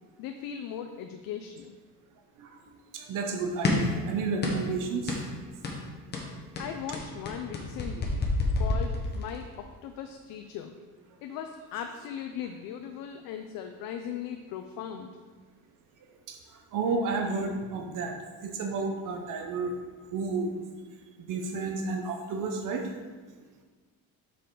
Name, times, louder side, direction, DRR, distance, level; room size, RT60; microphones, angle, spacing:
voice 1, 0.2-1.8 6.6-8.2 8.6-10.8 11.2-15.1, left 8 dB, 70° left, 6 dB, 0.5 m, -38 dB
voice 2, 2.9-5.2 16.3-16.4 16.7-18.2 18.4-19.7 20.1-20.6 21.2-22.8, right 4 dB, 60° right, 3 dB, 0.7 m, -31 dB
sound 1, 3.6-4.0 4.4-4.7 5.1-5.3 5.6-5.8 6.1-9.5, left 2 dB, 30° left, 0.9 m, -29 dB
6.8 x 5.1 x 3.8 m, 1.4 s
cardioid pair, 165°, 36 cm